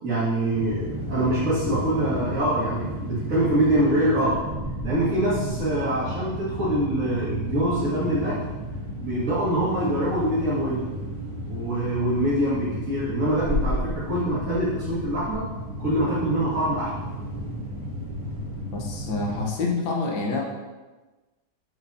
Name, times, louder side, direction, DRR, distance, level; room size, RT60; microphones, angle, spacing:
voice 1, 0.0-4.4 4.8-8.4 9.0-10.8 11.5-15.4 15.8-16.9, right 1 dB, 50° right, -11 dB, 2.1 m, -24 dB
sound 1, 0.5-19.5, equal, 10° left, 2.2 m, -32 dB
voice 2, 18.7-20.4, left 3 dB, 75° left, -1 dB, 1.6 m, -27 dB
7.6 x 7.0 x 2.7 m, 1.2 s
omnidirectional pair, 1.8 m